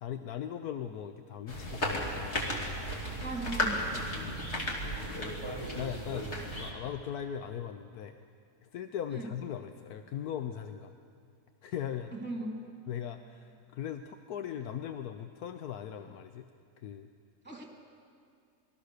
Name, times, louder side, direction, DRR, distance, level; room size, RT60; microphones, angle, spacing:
voice 1, 0.0-2.4 4.1-4.5 4.8-5.2 5.7-8.2 8.6-10.9 11.6-12.1 12.9-16.5 16.8-17.1, left 9 dB, 75° left, 8 dB, 1.3 m, -39 dB
sound 1, 1.5-6.7, equal, 45° left, 3.2 m, -34 dB
voice 2, 3.2-3.9 9.1-9.3 12.2-12.6 17.4-17.7, right 2 dB, 5° right, 0 dB, 3.6 m, -38 dB
28.0 x 21.5 x 6.6 m, 2.3 s
omnidirectional pair, 1.6 m